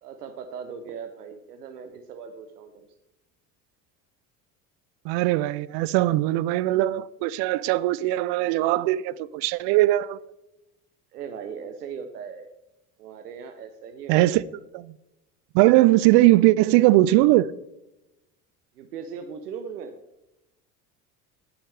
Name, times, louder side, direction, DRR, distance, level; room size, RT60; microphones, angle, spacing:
voice 1, 0.0-2.9 11.1-12.5 13.0-14.5 18.8-19.9, right 6 dB, 90° right, 0.8 m, -38 dB
voice 2, 5.0-10.2 14.1-14.4 14.7-14.9 15.5-17.5, right 17 dB, 60° right, 0.6 m, -20 dB
11.5 x 8.6 x 3.4 m
hypercardioid pair, 70°, 46 cm